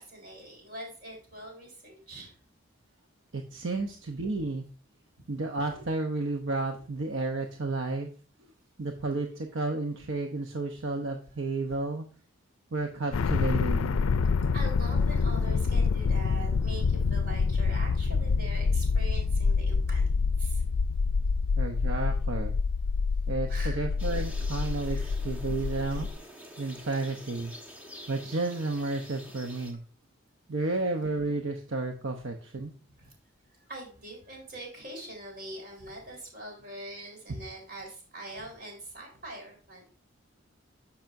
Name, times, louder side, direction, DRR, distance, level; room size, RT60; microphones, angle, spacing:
voice 1, 0.0-2.3 11.5-11.6 14.5-20.1 20.4-20.6 23.5-23.8 24.9-25.1 25.5-25.6 25.9-26.0 33.0-33.1 33.5-39.8, right 1 dB, 45° right, 1 dB, 4.1 m, -43 dB
voice 2, 3.3-4.6 5.3-8.1 8.8-12.1 12.7-14.0 21.6-22.6 23.3-26.1 26.6-27.5 28.1-29.8 30.5-32.7, right 3 dB, 75° right, 4 dB, 0.8 m, -32 dB
sound 1, 13.1-26.1, left 4 dB, 90° left, 0.4 m, -27 dB
sound 2, 24.0-29.7, equal, 10° right, 1.2 m, -47 dB
10.5 x 7.1 x 2.6 m, 0.40 s
head